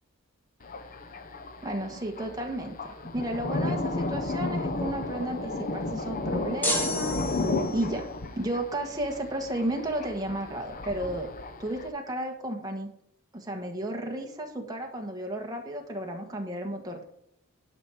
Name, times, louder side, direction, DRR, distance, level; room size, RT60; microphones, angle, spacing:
Thunder, 0.6-11.9, left 2 dB, 40° left, 0.8 m, -33 dB
voice 1, 1.6-8.1 8.4-11.3 11.6-12.9 13.3-17.0, right 1 dB, 20° right, 1 dB, 1.4 m, -33 dB
sound 1, 6.6-8.0, equal, 10° left, 1.9 m, -30 dB
10.5 x 6.0 x 4.9 m, 0.72 s
head